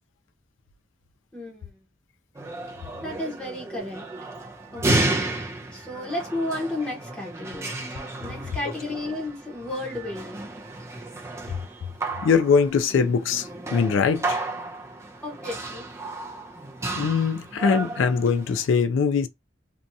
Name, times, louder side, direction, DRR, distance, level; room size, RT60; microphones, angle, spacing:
voice 1, 1.3-1.7 3.0-4.0 4.7-5.3 5.7-7.7 8.2-10.5 15.2-15.9, left 1 dB, 5° left, 0.9 m, -33 dB
sound 1, 2.3-18.6, right 2 dB, 15° right, 0.3 m, -32 dB
voice 2, 12.2-14.4 16.9-19.3, left 5 dB, 85° left, 0.3 m, -22 dB
2.7 x 2.3 x 2.5 m
head